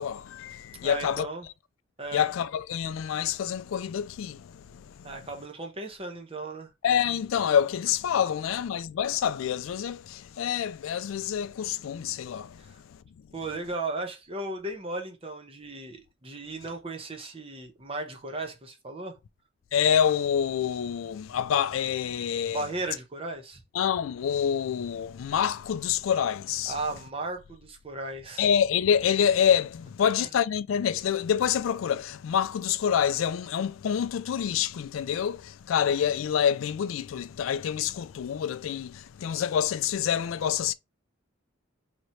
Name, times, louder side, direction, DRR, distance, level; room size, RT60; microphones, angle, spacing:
voice 1, 0.0-1.3 2.1-5.3 6.8-13.0 19.7-22.7 23.7-26.8 28.4-40.7, left 8 dB, 85° left, 0.3 m, -27 dB
voice 2, 0.8-1.5 2.0-2.2 5.0-6.7 12.6-12.7 13.3-19.2 22.5-23.6 26.7-28.5 30.2-30.3, right 2 dB, 30° right, 0.8 m, -36 dB
3.1 x 3.0 x 3.9 m
head